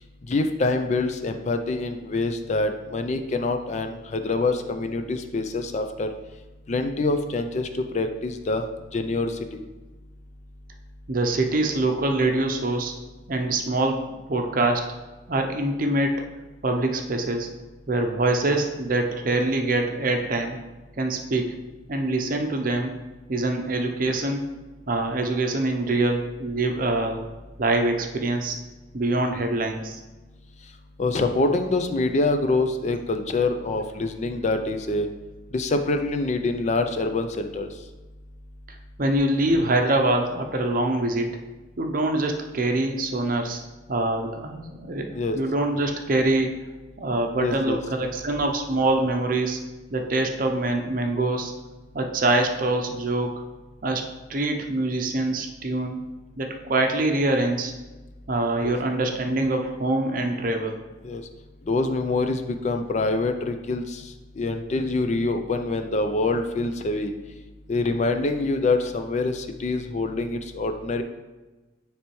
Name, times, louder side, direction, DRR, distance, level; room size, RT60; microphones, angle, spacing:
voice 1, 0.3-6.1 6.7-8.6 8.9-9.6 31.0-35.1 35.5-37.7 45.1-45.4 47.4-47.8 61.0-61.2 61.7-67.1 67.7-71.0, left 2 dB, 35° left, 6 dB, 0.4 m, -25 dB
voice 2, 11.1-12.9 13.3-15.0 15.3-16.3 16.6-17.5 17.9-20.6 21.0-21.6 21.9-23.0 23.3-24.4 24.9-27.3 27.6-28.6 28.9-30.0 38.7-41.3 41.8-43.6 43.9-46.7 47.0-49.6 49.9-51.5 51.9-53.4 53.8-56.0 56.4-57.7 58.3-60.8, right 2 dB, 45° right, 4 dB, 0.6 m, -24 dB
9.7 x 3.3 x 3.1 m, 1.2 s
head